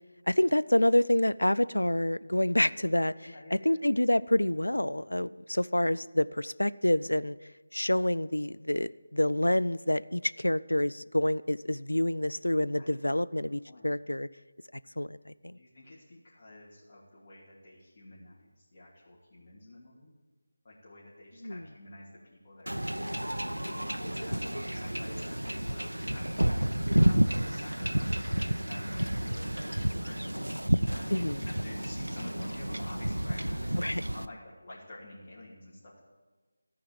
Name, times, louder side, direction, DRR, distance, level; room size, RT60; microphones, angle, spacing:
voice 1, 0.3-7.4 7.7-14.3 15.0-15.6 21.4-21.6 31.1-31.5 33.8-34.0, left 1 dB, 80° left, 16 dB, 0.4 m, -27 dB
voice 2, 3.2-3.7 12.7-12.9 13.7-13.9 15.5-20.1 20.6-26.3 26.9-30.4 30.8-33.8 34.1-36.0, left 1 dB, 35° left, -8 dB, 2.6 m, -50 dB
Wind / Ocean / Boat Water vehicle, 22.7-34.3, right 1 dB, 85° right, 0.5 m, -30 dB
14.0 x 4.8 x 9.1 m, 1.3 s
figure-of-eight pair, 160°, 0 cm